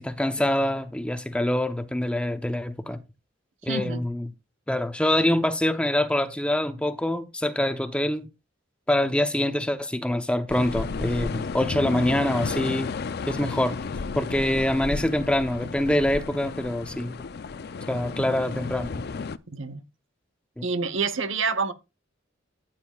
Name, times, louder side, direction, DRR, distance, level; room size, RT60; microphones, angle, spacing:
voice 1, 0.0-3.0 3.6-4.3 4.7-8.3 8.9-12.9 13.3-13.8 14.2-17.2 17.9-19.0 20.6-20.7, left 1 dB, 5° left, 0.7 m, -25 dB
voice 2, 3.7-4.0 19.5-19.8 20.6-21.7, right 4 dB, 75° right, 1.0 m, -27 dB
sound 1, 10.5-19.4, left 4 dB, 55° left, 0.5 m, -33 dB
14.0 x 9.1 x 2.4 m
head